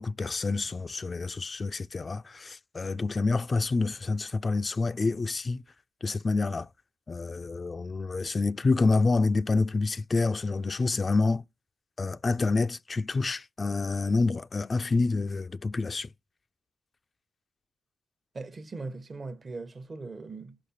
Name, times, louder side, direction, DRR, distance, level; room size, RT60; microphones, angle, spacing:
voice 1, 0.0-5.6 6.0-6.7 7.1-11.4 12.0-16.1, left 3 dB, 40° left, 0.4 m, -27 dB
voice 2, 18.3-20.6, right 3 dB, 40° right, 0.9 m, -39 dB
5.5 x 5.0 x 4.2 m
supercardioid pair, 60°, 0 cm